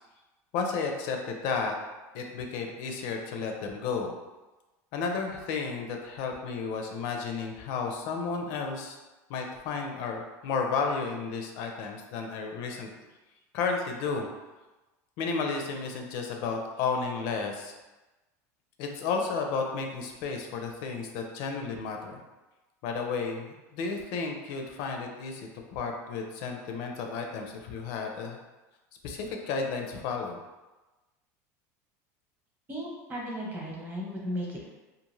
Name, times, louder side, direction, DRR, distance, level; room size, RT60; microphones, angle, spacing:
voice 1, 0.5-1.7 2.1-4.1 4.9-9.0 9.3-12.9 13.5-14.3 15.2-17.7 18.8-22.2 22.8-28.4 29.0-30.4, left 5 dB, 65° left, 3 dB, 0.5 m, -32 dB
voice 2, 32.7-34.7, equal, 20° right, -3 dB, 0.9 m, -35 dB
2.5 x 2.4 x 3.1 m, 1.1 s
supercardioid pair, 125°, 8 cm